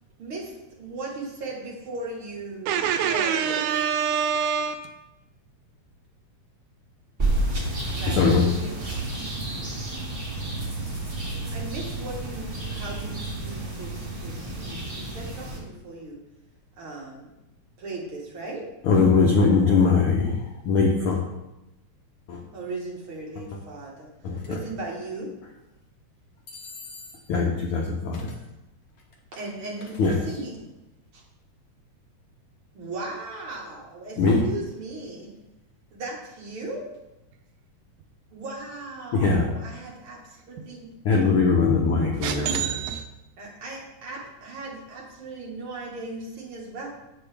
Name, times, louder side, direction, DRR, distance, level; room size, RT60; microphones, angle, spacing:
voice 1, 0.2-3.7 7.9-8.8 9.5-9.7 11.5-16.2 16.8-17.3 17.8-18.6 22.5-25.3 29.4-30.7 31.1-31.2 32.7-35.4 35.9-36.9 38.3-40.9 43.4-46.9, right 2 dB, 50° right, -3 dB, 2.0 m, -37 dB
voice 2, 2.7-4.9 42.2-43.1, right 8 dB, 80° right, 6 dB, 1.9 m, -25 dB
sound 1, 7.2-15.6, right 2 dB, 25° right, 1.2 m, -31 dB
voice 3, 8.1-8.6 18.8-21.2 22.3-22.4 24.2-24.6 27.3-28.3 30.0-30.2 34.2-34.5 39.1-39.5 41.0-42.6, left 4 dB, 85° left, 0 dB, 1.2 m, -21 dB
sound 2, 24.4-24.6 26.5-27.4 28.1-28.4 29.0-30.3, left 3 dB, 65° left, 1.1 m, -45 dB
8.4 x 7.0 x 3.4 m, 0.95 s
omnidirectional pair, 3.6 m